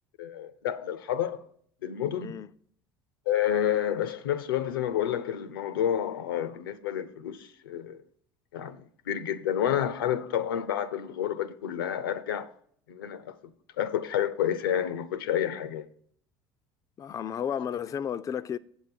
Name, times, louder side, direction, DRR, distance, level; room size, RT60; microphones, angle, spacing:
voice 1, 0.2-1.5 1.8-2.4 3.3-8.0 8.5-12.5 12.9-15.9, left 10 dB, 80° left, 0.5 m, -30 dB
voice 2, 17.0-18.6, left 8 dB, 30° left, 0.3 m, -32 dB
7.7 x 7.1 x 4.3 m
hypercardioid pair, 70°, 12 cm